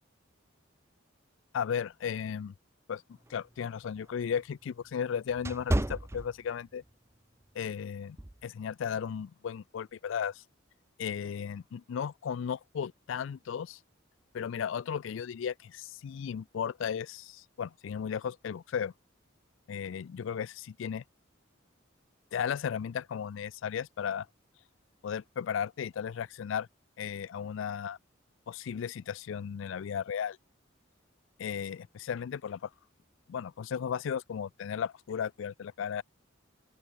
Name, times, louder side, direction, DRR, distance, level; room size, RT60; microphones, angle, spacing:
voice 1, 1.5-2.5 2.9-3.0 3.3-6.8 7.5-8.2 8.4-10.4 11.0-13.8 14.3-18.9 19.7-21.0 22.3-24.3 25.0-26.7 27.0-28.0 28.5-30.4 31.4-32.7 33.3-36.0, left 7 dB, 75° left, 0.3 m, -35 dB
sound 1, 3.2-6.9 7.3-7.6 8.2-8.4, right 1 dB, 15° right, 0.6 m, -34 dB
open air
head